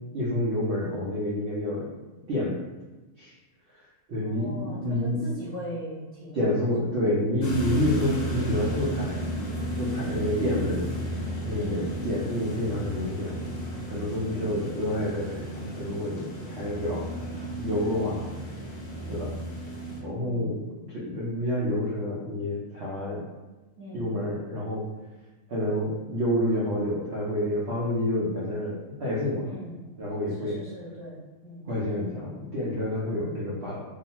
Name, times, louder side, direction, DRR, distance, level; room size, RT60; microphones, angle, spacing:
voice 1, 0.1-1.9 2.3-2.6 3.2-3.3 4.1-5.3 6.3-9.2 9.8-10.9 11.4-13.3 13.9-17.1 17.6-18.2 19.1-19.3 20.0-23.3 23.9-24.8 25.5-29.5 30.0-30.6 31.7-33.8, left 1 dB, 60° right, -6 dB, 0.7 m, -28 dB
voice 2, 4.2-6.6 7.8-8.1 11.5-11.9 14.2-14.6 16.8-17.4 18.1-18.5 18.9-19.3 20.2-20.5 23.8-24.1 29.4-29.8 30.4-31.7 33.0-33.4, equal, 10° right, -9 dB, 0.8 m, -41 dB
sound 1, 7.4-20.0, right 1 dB, 65° left, 0.4 m, -33 dB
2.5 x 2.3 x 2.8 m, 1.1 s
omnidirectional pair, 1.5 m